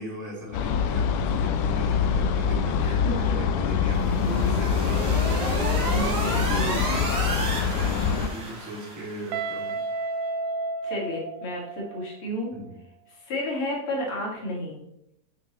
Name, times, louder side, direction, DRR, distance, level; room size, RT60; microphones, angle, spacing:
voice 1, 0.0-9.8 12.5-12.7, right 1 dB, 5° right, -6 dB, 2.1 m, -37 dB
sound 1, 0.5-8.3, left 7 dB, 85° left, 2.1 m, -24 dB
voice 2, 2.8-3.4 3.8-4.0 5.9-6.8 10.8-12.5 13.1-14.8, left 1 dB, 45° left, -2 dB, 2.7 m, -32 dB
sound 2, 3.9-9.5, right 2 dB, 45° right, 1.6 m, -32 dB
Guitar, 9.3-12.1, right 3 dB, 90° right, 2.1 m, -31 dB
7.8 x 6.1 x 3.0 m, 0.78 s
omnidirectional pair, 3.5 m